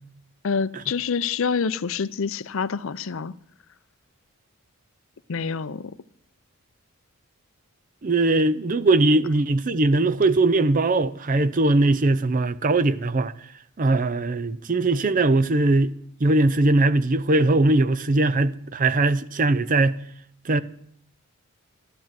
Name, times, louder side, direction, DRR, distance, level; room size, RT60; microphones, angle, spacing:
voice 1, 0.4-3.3 5.3-6.0, left 5 dB, 65° left, 0.5 m, -27 dB
voice 2, 8.0-13.3 13.8-16.0 16.2-20.0 20.4-20.6, right 2 dB, 35° right, 0.5 m, -20 dB
12.0 x 12.0 x 7.5 m
head